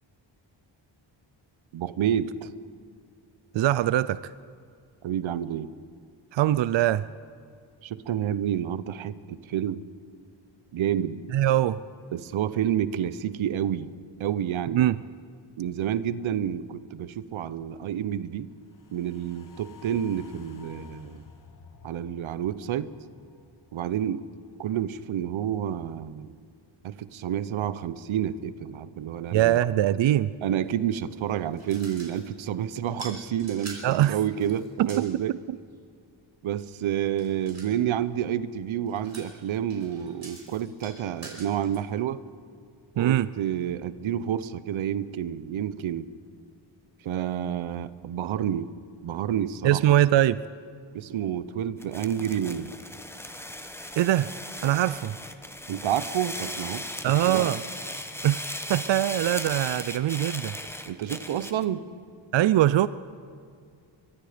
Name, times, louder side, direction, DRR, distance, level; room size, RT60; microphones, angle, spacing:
voice 1, 1.7-2.5 5.0-5.7 7.8-9.8 10.7-11.2 12.1-13.9 14.2-14.9 15.6-18.5 18.9-21.2 21.8-22.9 23.7-24.2 24.6-26.4 26.8-29.6 30.4-35.4 36.4-42.2 43.0-46.1 47.0-48.7 49.0-49.8 50.9-52.7 55.7-57.5 60.9-61.8, right 10 dB, 90° right, 15 dB, 0.9 m, -29 dB
voice 2, 3.5-4.3 6.3-7.1 11.3-11.8 14.7-15.0 29.3-30.3 33.8-34.2 34.8-35.2 43.0-43.3 49.6-50.4 54.0-54.3 54.6-55.2 57.0-57.6 58.2-58.4 58.7-60.6 62.3-62.9, right 13 dB, 65° right, 16 dB, 0.6 m, -22 dB
sound 1, 18.7-25.1 25.4-25.5, left 6 dB, 40° left, 1.5 m, -51 dB
sound 2, 31.1-32.4 32.9-35.2 37.2-37.8 38.9-41.8, right 2 dB, 35° right, 5.2 m, -46 dB
sound 3, 51.8-61.6, left 1 dB, 5° left, 1.3 m, -37 dB
24.0 x 21.5 x 5.1 m, 2.4 s
wide cardioid pair, 105°, 47 cm